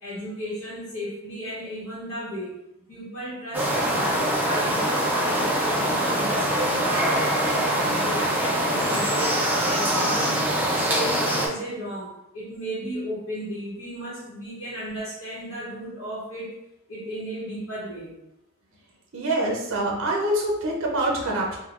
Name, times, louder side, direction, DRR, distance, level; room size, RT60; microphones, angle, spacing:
voice 1, 0.0-2.6 2.9-10.4 10.7-16.5 16.9-18.1, equal, 60° left, -10 dB, 1.0 m, -35 dB
sound 1, 3.5-11.5, right 1 dB, 10° right, 0.4 m, -23 dB
voice 2, 19.1-21.6, right 1 dB, 60° right, -1 dB, 0.5 m, -25 dB
3.6 x 2.1 x 2.4 m, 0.84 s
head